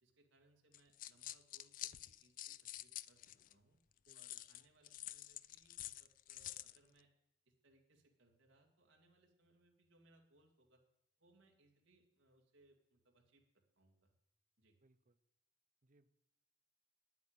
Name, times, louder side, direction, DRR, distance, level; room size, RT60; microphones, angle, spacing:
voice 1, 0.0-3.2 3.5-3.8 4.1-7.1 7.5-10.8 11.2-14.1 14.6-14.8, right 2 dB, 75° right, 1 dB, 2.2 m, -72 dB
sound 1, 0.7-3.5 4.1-6.8, left 14 dB, 45° left, 0.3 m, -49 dB
voice 2, 4.1-4.4 14.8-15.2 15.8-16.1, right 2 dB, 45° right, 12 dB, 0.7 m, -72 dB
10.5 x 8.2 x 8.8 m, 0.88 s
head